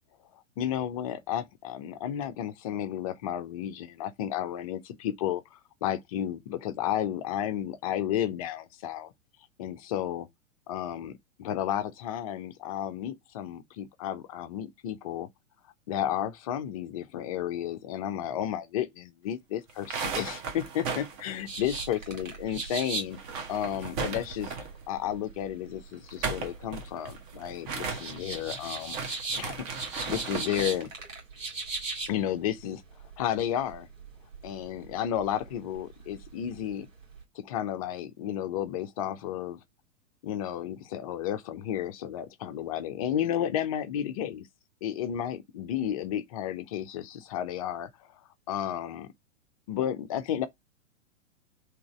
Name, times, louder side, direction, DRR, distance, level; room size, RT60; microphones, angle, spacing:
voice 1, 0.6-9.1 9.6-10.3 10.7-15.3 15.9-23.2 23.5-24.5 24.9-29.0 29.4-29.6 30.1-30.9 32.1-32.8 33.2-33.9 34.4-36.9 37.4-39.6 40.2-44.5 44.8-47.9 48.5-49.1 49.7-50.5, left 10 dB, 30° left, 0.5 m, -32 dB
sound 1, 19.7-22.3 22.6-22.7 23.1-24.8 25.9-30.8, right 5 dB, 30° right, 1.0 m, -36 dB
sound 2, 21.5-37.2, right 4 dB, 75° right, 1.7 m, -40 dB
3.8 x 2.9 x 4.5 m
figure-of-eight pair, 105°, 39 cm